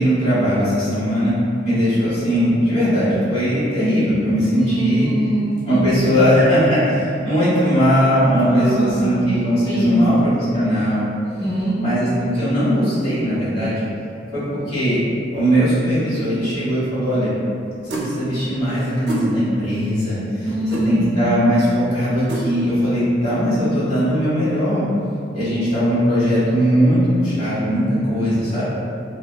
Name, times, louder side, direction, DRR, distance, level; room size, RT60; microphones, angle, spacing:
voice 1, 0.0-1.3 1.6-5.1 5.6-11.1 11.8-13.8 14.3-15.0 15.3-17.3 17.8-20.4 20.7-24.8 25.3-28.6, equal, 35° left, -12 dB, 1.2 m, -19 dB
voice 2, 4.6-6.1 8.4-9.3 9.7-10.1 11.2-11.8 20.4-21.3, right 1 dB, 70° left, -12 dB, 0.9 m, -23 dB
sound 1, 17.9-18.1 19.1-19.3 20.7-20.9 22.3-22.5, right 2 dB, 75° right, 0.5 m, -26 dB
3.3 x 2.0 x 2.2 m, 2.4 s
head